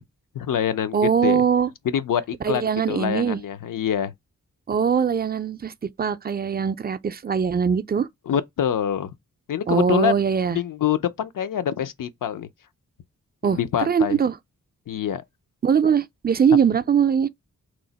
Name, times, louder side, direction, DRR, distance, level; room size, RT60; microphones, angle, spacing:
voice 1, 0.3-1.4 1.8-4.1 8.3-9.1 9.5-10.2 10.5-12.5 13.4-14.2 14.9-15.2, left 9 dB, 70° left, 0.5 m, -25 dB
voice 2, 0.9-1.7 2.4-3.4 4.7-5.7 6.0-8.1 9.7-10.6 13.4-13.6 13.9-14.4 15.6-17.3, right 7 dB, 30° right, 0.4 m, -21 dB
3.0 x 2.0 x 3.9 m
cardioid pair, 45°, 34 cm